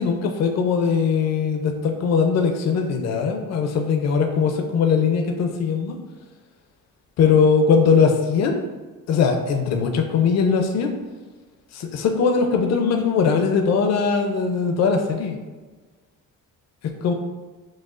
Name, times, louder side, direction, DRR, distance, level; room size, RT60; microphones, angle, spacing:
voice 1, 0.0-6.0 7.2-8.7 9.1-10.9 11.7-15.4 17.0-17.1, left 5 dB, 50° left, 4 dB, 0.5 m, -20 dB
6.1 x 2.3 x 2.4 m, 1.3 s
cardioid pair, 125°, 34 cm